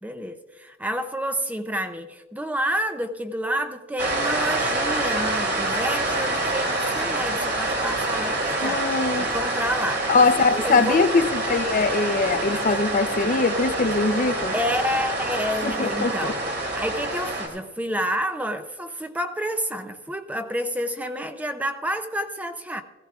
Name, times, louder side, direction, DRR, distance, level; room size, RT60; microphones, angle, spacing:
voice 1, 0.0-8.9 9.2-10.1 10.4-11.0 14.5-16.4 16.8-22.8, equal, 10° right, 8 dB, 0.5 m, -29 dB
sound 1, 4.0-17.5, right 2 dB, 60° right, 2.7 m, -26 dB
voice 2, 8.6-9.3 10.1-14.5 15.6-16.3, left 4 dB, 40° left, 10 dB, 0.6 m, -22 dB
17.0 x 15.0 x 2.4 m, 1.2 s
head